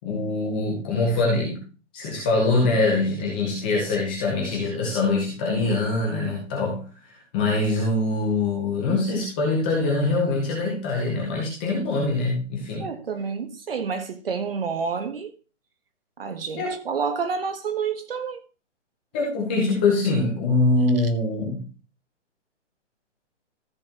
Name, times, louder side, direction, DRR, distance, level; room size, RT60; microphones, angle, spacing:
voice 1, 0.0-1.7 1.9-12.9 16.6-16.8 19.1-21.7, left 2 dB, 10° left, 0.8 m, -24 dB
voice 2, 12.8-15.3 16.2-18.4 21.0-21.1, right 5 dB, 50° right, 1.4 m, -29 dB
13.5 x 6.6 x 2.9 m
hypercardioid pair, 165°, 37 cm